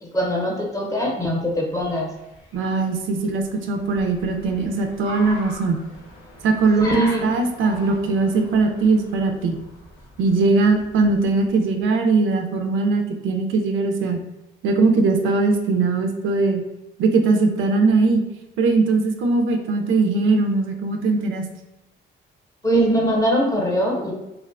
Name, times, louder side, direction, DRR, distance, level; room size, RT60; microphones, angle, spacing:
voice 1, 0.0-2.1 6.8-7.3 22.6-24.1, equal, 15° left, -1 dB, 0.7 m, -21 dB
Car, 1.5-11.7, left 1 dB, 80° left, 0.7 m, -39 dB
voice 2, 2.5-5.8 6.4-6.9 7.2-9.6 10.2-14.2 14.6-16.6 17.0-18.2 18.6-21.5, right 3 dB, 85° right, 4 dB, 0.4 m, -20 dB
2.5 x 2.1 x 2.5 m, 0.97 s
cardioid pair, 90°, 20 cm